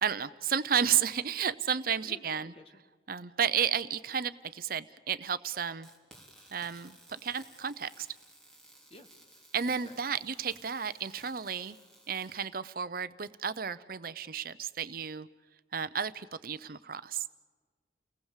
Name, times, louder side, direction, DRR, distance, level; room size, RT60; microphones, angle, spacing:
voice 1, 0.0-2.5 3.1-5.9 6.5-7.0 7.2-8.1 9.5-11.8 12.1-15.3 15.7-17.2, right 7 dB, 50° right, 13 dB, 0.7 m, -32 dB
voice 2, 2.0-2.7 8.9-10.0, left 1 dB, 30° left, 6 dB, 2.0 m, -53 dB
sound 1, 5.8-12.5, right 1 dB, 5° left, 3.8 m, -57 dB
30.0 x 18.5 x 7.4 m, 1.4 s
head